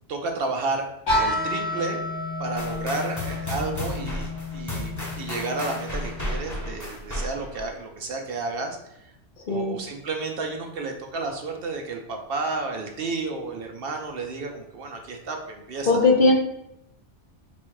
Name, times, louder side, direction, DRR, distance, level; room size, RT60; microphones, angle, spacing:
voice 1, 0.1-0.8 1.1-2.0 2.4-8.8 9.5-16.0, right 3 dB, 60° right, 3 dB, 0.7 m, -31 dB
sound 1, 1.1-6.9, left 2 dB, 90° left, 2.1 m, -30 dB
sound 2, 2.6-7.7, equal, 15° left, 0.9 m, -33 dB
voice 2, 9.5-9.8 15.9-16.3, left 3 dB, 55° left, 0 dB, 0.6 m, -18 dB
4.1 x 2.4 x 4.5 m, 0.84 s
omnidirectional pair, 1.2 m